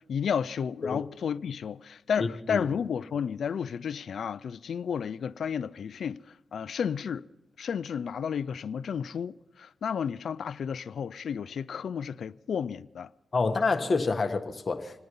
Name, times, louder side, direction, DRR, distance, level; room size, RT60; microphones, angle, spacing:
voice 1, 0.1-6.2 6.5-7.2 7.6-13.1, left 7 dB, 75° left, 0.4 m, -32 dB
voice 2, 2.2-2.7 13.3-15.0, left 4 dB, 45° left, 1.5 m, -28 dB
27.0 x 9.4 x 5.5 m
cardioid pair, 60°, 0 cm